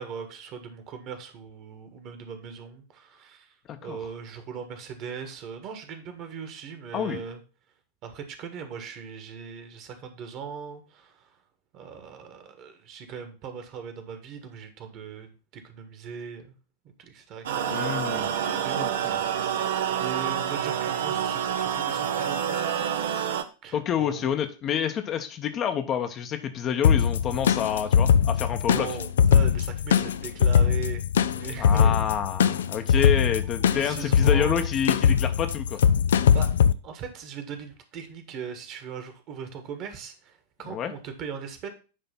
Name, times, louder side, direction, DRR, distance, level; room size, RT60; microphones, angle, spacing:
voice 1, 0.0-3.6 3.8-7.4 8.0-11.4 11.7-16.5 17.0-19.5 19.9-22.9 23.6-24.3 28.7-31.1 31.3-32.0 32.9-33.1 33.7-34.8 36.3-36.6 36.8-41.7, right 6 dB, 40° right, 7 dB, 1.5 m, -39 dB
sound 1, 17.4-23.4, right 9 dB, 60° right, 0.7 m, -28 dB
voice 2, 17.7-18.3 18.8-19.2 23.7-28.9 31.6-35.8 40.7-40.9, left 8 dB, 30° left, 7 dB, 0.9 m, -28 dB
sound 2, 26.8-36.7, left 7 dB, 60° left, 0.4 m, -21 dB
9.8 x 3.3 x 5.8 m, 0.34 s
figure-of-eight pair, 90°, 0 cm